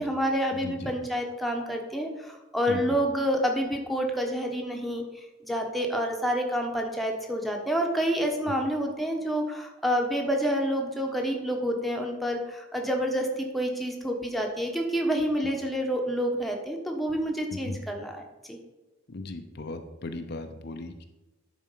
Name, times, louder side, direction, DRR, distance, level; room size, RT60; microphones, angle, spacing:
voice 1, 0.0-18.2 18.5-18.6, equal, ahead, 1 dB, 1.1 m, -28 dB
voice 2, 19.1-21.1, left 2 dB, 55° left, 6 dB, 0.7 m, -37 dB
10.5 x 4.3 x 5.7 m, 1.0 s
head